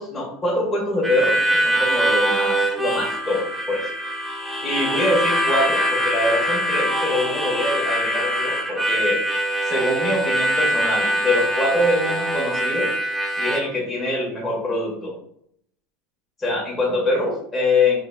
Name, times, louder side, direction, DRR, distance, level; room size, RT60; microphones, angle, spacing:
voice 1, 0.0-3.8 4.6-9.2 9.6-12.9 13.4-15.1 16.4-18.0, left 2 dB, 15° left, -4 dB, 1.5 m, -24 dB
Harmonica, 1.0-13.6, right 1 dB, ahead, 0.8 m, -23 dB
3.7 x 3.4 x 2.4 m, 0.69 s
hypercardioid pair, 85°, 0 cm